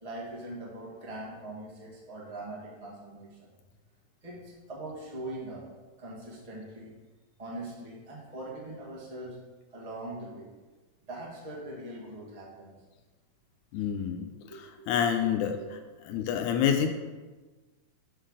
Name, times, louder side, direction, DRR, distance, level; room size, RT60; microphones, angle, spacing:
voice 1, 0.0-3.5 4.2-5.6 6.0-6.9 7.4-9.4 9.7-10.5 11.1-12.7 14.5-14.9 15.5-15.7, right 1 dB, 40° right, -5 dB, 0.5 m, -41 dB
voice 2, 13.7-15.8 16.1-16.9, left 8 dB, 85° left, 5 dB, 2.0 m, -28 dB
6.4 x 3.8 x 6.3 m, 1.3 s
omnidirectional pair, 3.4 m